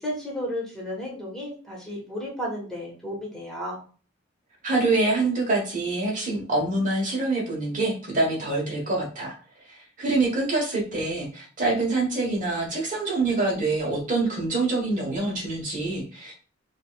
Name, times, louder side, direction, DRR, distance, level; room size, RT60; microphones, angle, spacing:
voice 1, 0.0-3.8, equal, 5° left, -4 dB, 1.3 m, -33 dB
voice 2, 4.6-9.3 9.7-16.3, right 2 dB, 40° right, -1 dB, 1.2 m, -25 dB
5.0 x 2.5 x 2.4 m, 0.39 s
head